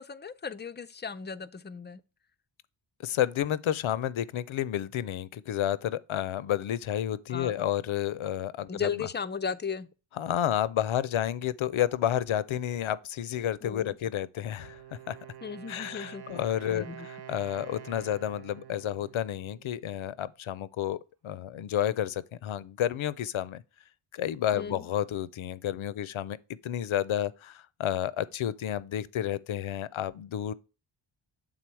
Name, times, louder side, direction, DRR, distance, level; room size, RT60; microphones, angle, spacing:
voice 1, 0.0-2.0 7.3-7.5 8.7-9.9 13.6-14.0 15.4-16.4 16.7-17.1 24.5-24.9, left 6 dB, 25° left, 0.4 m, -36 dB
voice 2, 3.0-9.1 10.2-14.8 15.1-15.2 15.7-23.6 24.1-26.4 26.6-30.5, left 11 dB, 70° left, 0.6 m, -31 dB
Wind instrument woodwind instrument, 14.5-20.2, right 9 dB, 50° right, 0.6 m, -47 dB
7.6 x 3.8 x 4.5 m
wide cardioid pair, 75°, 50 cm